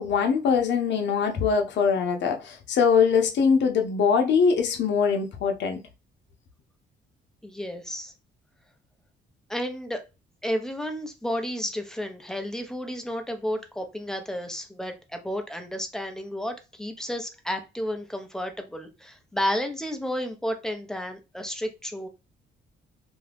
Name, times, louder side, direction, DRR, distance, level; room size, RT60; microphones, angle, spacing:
voice 1, 0.0-5.8, left 6 dB, 65° left, 0.8 m, -22 dB
voice 2, 7.4-8.1 9.5-10.0 10.4-22.1, equal, 5° left, 0.7 m, -32 dB
2.7 x 2.3 x 3.4 m
cardioid pair, 90°, 20 cm